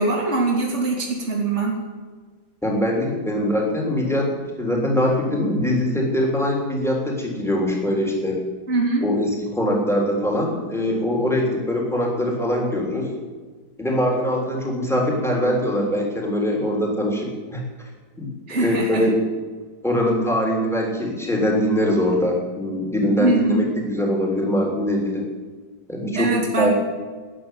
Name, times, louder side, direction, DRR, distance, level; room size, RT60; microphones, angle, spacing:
voice 1, 0.0-1.7 8.7-9.1 18.5-19.0 23.2-23.7 26.1-26.7, right 3 dB, 40° right, -2 dB, 3.0 m, -22 dB
voice 2, 2.6-8.4 9.0-13.1 13.8-17.6 18.2-19.2 19.8-25.2 25.9-26.7, left 1 dB, ahead, -1 dB, 3.5 m, -22 dB
13.0 x 10.0 x 9.4 m, 1.5 s
omnidirectional pair, 1.8 m